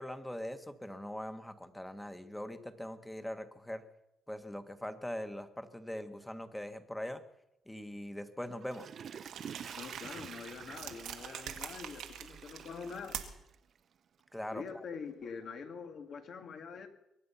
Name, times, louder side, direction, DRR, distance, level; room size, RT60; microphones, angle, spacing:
voice 1, 0.0-3.8 4.3-7.2 7.6-8.9 14.3-14.8, left 1 dB, 5° left, 9 dB, 1.5 m, -41 dB
Water / Toilet flush, 8.5-13.8 14.2-14.3, right 7 dB, 55° right, 0.7 m, -48 dB
sound 1, 9.2-13.5, right 9 dB, 85° right, 1.7 m, -45 dB
voice 2, 9.8-13.3 14.5-16.9, left 5 dB, 60° left, 6 dB, 2.1 m, -45 dB
23.0 x 9.6 x 5.7 m, 0.86 s
cardioid pair, 90°, 0 cm